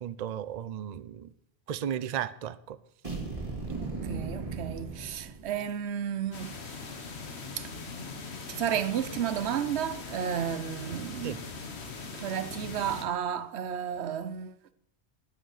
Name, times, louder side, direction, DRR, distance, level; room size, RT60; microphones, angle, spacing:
voice 1, 0.0-1.3 1.7-2.8 11.2-11.4, right 9 dB, 50° right, 0.5 m, -34 dB
sound 1, 3.0-5.8, right 3 dB, 30° right, 2.6 m, -37 dB
voice 2, 3.8-6.6 7.6-7.7 8.5-11.4 12.1-14.5, right 9 dB, 85° right, 0.9 m, -32 dB
sound 2, 6.3-13.0, left 4 dB, 80° left, 1.5 m, -41 dB
9.5 x 9.0 x 6.4 m
omnidirectional pair, 1.1 m